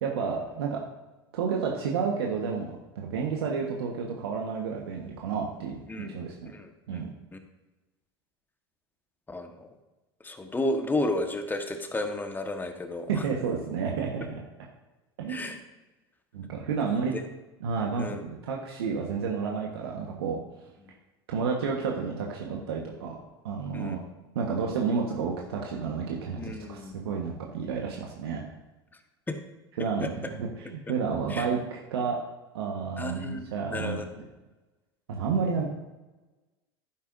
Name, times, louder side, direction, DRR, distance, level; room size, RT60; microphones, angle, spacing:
voice 1, 0.0-0.8 1.3-6.5 6.9-7.1 13.1-14.4 15.2-15.5 16.3-17.1 17.6-20.4 21.3-23.2 23.4-24.0 24.3-26.4 26.7-28.5 29.8-32.2 32.5-34.2 35.1-35.7, right 5 dB, 75° right, 0 dB, 1.3 m, -31 dB
voice 2, 6.4-7.4 9.3-9.7 10.2-13.2 15.3-15.6 16.9-17.2 18.0-18.2 23.7-24.0 26.3-26.9 29.3-29.4 29.8-30.1 31.3-31.5 33.0-34.2, left 2 dB, 15° left, 5 dB, 1.4 m, -33 dB
11.5 x 10.5 x 2.7 m, 1.1 s
hypercardioid pair, 85°, 13 cm